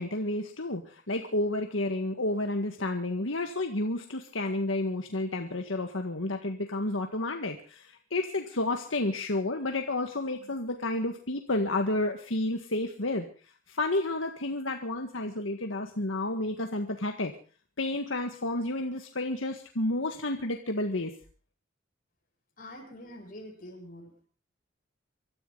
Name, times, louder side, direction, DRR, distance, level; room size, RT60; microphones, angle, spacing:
voice 1, 0.0-13.3 13.7-17.3 17.8-21.1, left 2 dB, 80° left, 4 dB, 1.8 m, -31 dB
voice 2, 22.6-24.3, left 1 dB, 45° left, 1 dB, 7.2 m, -45 dB
25.0 x 13.5 x 4.0 m, 0.39 s
head